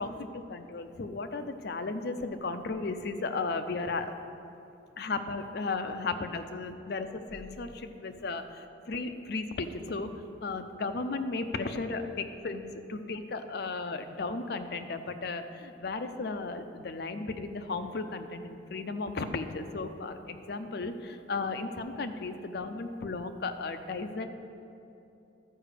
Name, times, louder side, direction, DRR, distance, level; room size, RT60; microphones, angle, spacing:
voice 1, 0.0-4.1 5.0-10.1 10.4-24.3, left 3 dB, 55° left, 8 dB, 0.5 m, -35 dB
12.0 x 4.9 x 6.6 m, 2.7 s
head